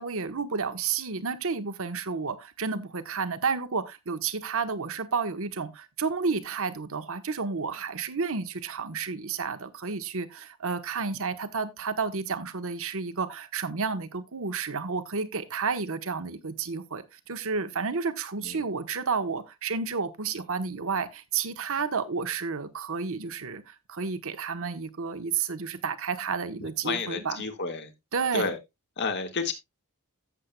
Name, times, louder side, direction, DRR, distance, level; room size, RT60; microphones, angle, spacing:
voice 1, 0.0-27.4 28.1-28.5, right 5 dB, 65° right, 1.0 m, -31 dB
voice 2, 26.6-27.9 28.3-28.6 29.0-29.5, left 4 dB, 50° left, 1.8 m, -31 dB
14.5 x 7.5 x 2.2 m
head